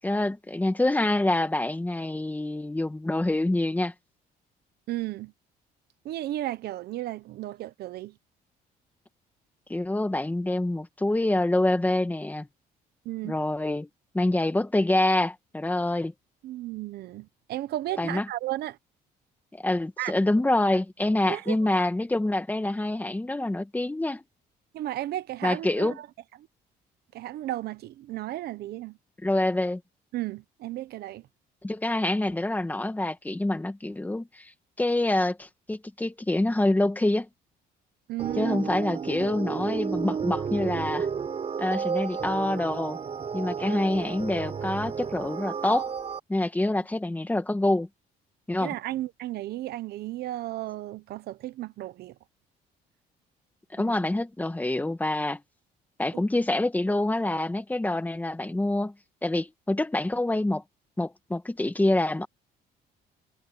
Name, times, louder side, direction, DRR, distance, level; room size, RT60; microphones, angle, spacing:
voice 1, 0.0-3.9 9.7-12.5 13.2-13.9 14.1-16.1 18.0-18.2 19.5-24.2 25.4-26.0 29.2-29.8 31.6-34.5 34.8-37.3 38.4-41.1 41.6-43.0 43.3-45.9 46.3-47.9 48.5-48.7 53.7-55.4 56.0-58.9 59.2-60.6 61.0-62.3, left 1 dB, 10° left, 2.1 m, -26 dB
voice 2, 4.9-5.3 6.0-8.2 13.0-13.3 16.4-18.8 20.0-20.1 21.3-21.8 24.7-26.1 27.1-29.0 30.1-31.3 38.1-38.7 48.6-52.1 53.8-53.9 56.1-56.2, right 14 dB, 70° right, 1.1 m, -34 dB
sound 1, 38.2-46.2, right 6 dB, 35° right, 4.6 m, -32 dB
cardioid pair, 110°, 17 cm